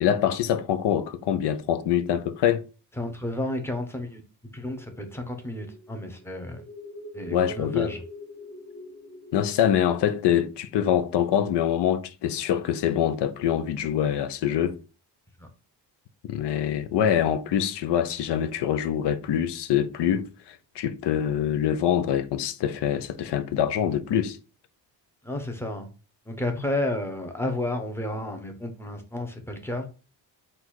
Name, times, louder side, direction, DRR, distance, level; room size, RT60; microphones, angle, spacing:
voice 1, 0.0-2.6 7.3-7.9 9.3-14.8 16.2-24.4, left 9 dB, 80° left, 0.6 m, -25 dB
voice 2, 3.0-4.2 4.5-6.6 7.1-8.0 15.4-15.5 25.2-25.9 26.3-29.9, left 1 dB, 5° left, 0.8 m, -31 dB
sound 1, 4.7-11.2, left 2 dB, 30° left, 1.0 m, -45 dB
4.0 x 2.5 x 4.5 m
cardioid pair, 140°, 41 cm